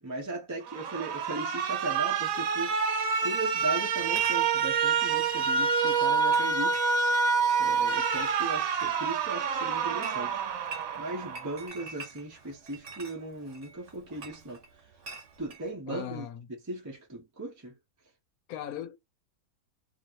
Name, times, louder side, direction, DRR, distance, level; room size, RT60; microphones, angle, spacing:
voice 1, 0.0-2.8 3.2-6.8 7.6-10.4 10.9-14.9 15.4-16.3 16.6-17.7, right 2 dB, 15° right, 0.7 m, -37 dB
Alarm, 0.7-11.7, right 5 dB, 70° right, 1.0 m, -27 dB
Chatter / Chink clink, 4.0-15.7, right 4 dB, 55° right, 1.4 m, -48 dB
voice 2, 15.9-16.4 18.5-19.0, left 10 dB, 90° left, 1.1 m, -38 dB
2.9 x 2.7 x 2.8 m
omnidirectional pair, 1.5 m